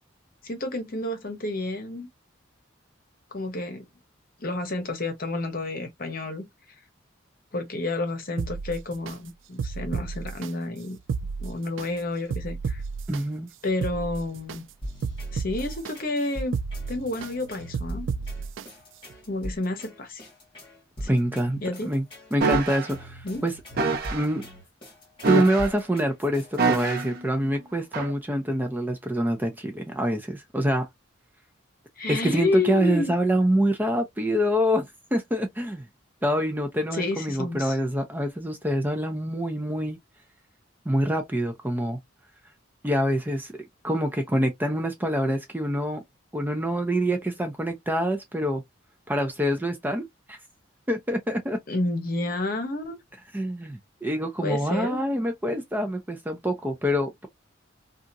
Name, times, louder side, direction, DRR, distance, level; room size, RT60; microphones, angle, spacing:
voice 1, 0.4-2.1 3.3-3.9 4.4-6.5 7.5-11.0 11.4-12.8 13.6-14.6 15.3-16.5 16.9-18.1 19.3-20.3 21.0-21.1 21.6-21.9 23.2-23.4 32.0-33.1 36.9-37.8 51.7-53.0 54.4-55.0, left 2 dB, 45° left, 1.0 m, -30 dB
sound 1, 8.4-9.1 9.6-10.5 11.0-11.9 12.3-13.2 13.7-14.6 15.0-15.9 16.4-17.3 17.7-18.6 19.1-19.2, right 5 dB, 65° right, 0.3 m, -32 dB
voice 2, 13.1-13.5 21.1-22.0 22.3-23.5 24.1-24.4 25.3-30.9 32.1-35.8 36.2-40.0 40.9-42.0 42.8-46.0 46.3-48.6 49.1-50.4 50.9-51.6 53.3-57.3, equal, 10° right, 0.5 m, -26 dB
sound 2, 14.8-27.1, equal, 25° left, 1.5 m, -41 dB
sound 3, 22.4-22.9 23.8-24.3 25.2-25.9 26.6-27.2 27.9-28.1, right 3 dB, 50° right, 0.7 m, -25 dB
2.8 x 2.4 x 2.6 m
head